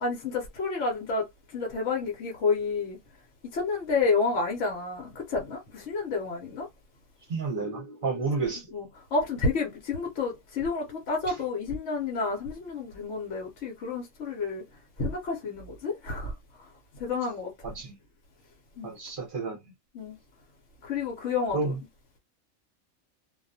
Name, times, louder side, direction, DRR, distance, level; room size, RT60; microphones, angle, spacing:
voice 1, 0.0-1.3 1.5-3.0 3.4-6.7 8.4-8.9 9.1-14.6 15.0-16.3 16.9-17.8 18.8-18.9 19.9-20.2 20.8-21.7, left 4 dB, 65° left, 1.0 m, -30 dB
voice 2, 7.3-8.7 11.3-11.4 17.6-18.0 18.8-19.6 21.5-21.8, right 4 dB, 45° right, 0.8 m, -31 dB
2.3 x 2.2 x 2.5 m
omnidirectional pair, 1.4 m